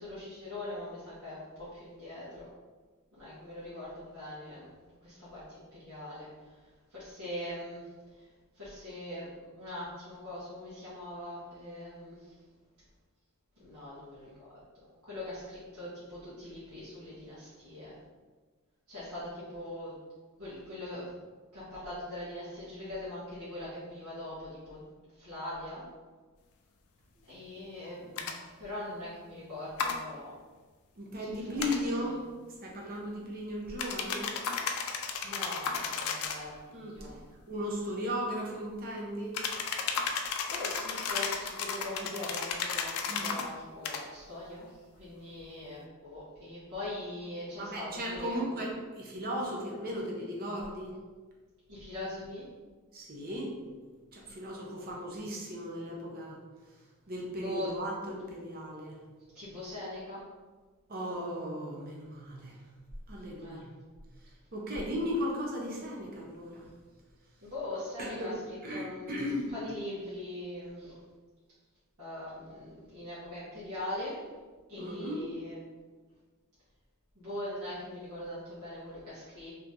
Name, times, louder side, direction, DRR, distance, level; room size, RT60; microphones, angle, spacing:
voice 1, 0.0-2.5 3.1-4.7 5.0-6.5 6.9-7.8 8.1-8.3 8.5-9.3 9.5-12.3 13.6-14.5 15.0-17.9 18.9-19.9 20.4-21.1 21.5-24.8 25.2-25.8 27.3-30.4 31.2-31.7 35.2-37.2 40.5-44.7 45.0-48.4 51.7-52.5 54.8-54.9 57.4-57.7 59.3-60.2 63.4-63.7 67.4-68.3 68.7-71.0 72.0-74.2 74.7-75.8 77.1-79.5, left 1 dB, 70° right, -11 dB, 1.2 m, -42 dB
sound 1, 28.2-28.3 29.8-30.0 31.6-31.8 33.8-36.4 39.3-43.5 43.8-44.0, left 5 dB, 75° left, 0.4 m, -34 dB
voice 2, 31.0-32.3 32.6-34.3 36.7-37.1 37.5-39.4 43.1-43.3 47.6-50.9 52.9-53.6 54.1-56.4 57.1-59.0 60.9-62.6 63.1-63.7 64.5-66.7 68.0-68.3 68.6-69.5 74.8-75.4, equal, 40° right, -2 dB, 0.7 m, -36 dB
2.9 x 2.6 x 3.5 m, 1.4 s
head